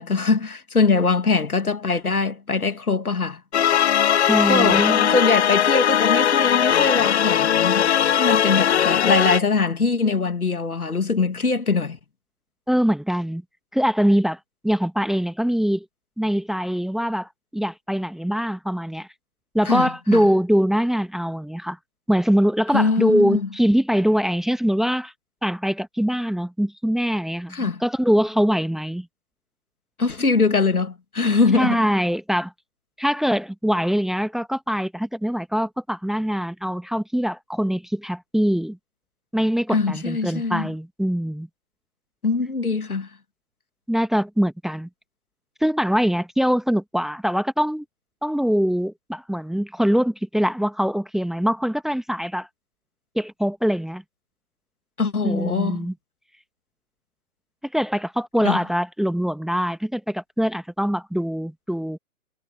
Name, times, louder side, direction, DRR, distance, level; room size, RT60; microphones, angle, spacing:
voice 1, 0.0-3.4 4.5-12.0 19.6-20.3 22.7-23.5 27.5-27.8 30.0-31.8 39.7-40.7 42.2-43.1 55.0-55.9 58.4-58.6, left 4 dB, 80° left, 2.3 m, -22 dB
sound 1, 3.5-9.4, left 9 dB, 50° left, 0.5 m, -19 dB
voice 2, 4.3-5.2 12.7-13.4 13.7-15.8 16.2-19.1 19.5-21.8 22.1-25.1 25.4-29.1 31.5-32.5 33.0-38.8 39.3-41.5 43.9-44.9 45.6-47.8 48.2-52.5 53.1-54.0 55.2-55.9 57.7-62.0, equal, ahead, 1.4 m, -23 dB
figure-of-eight pair, 125°, 44 cm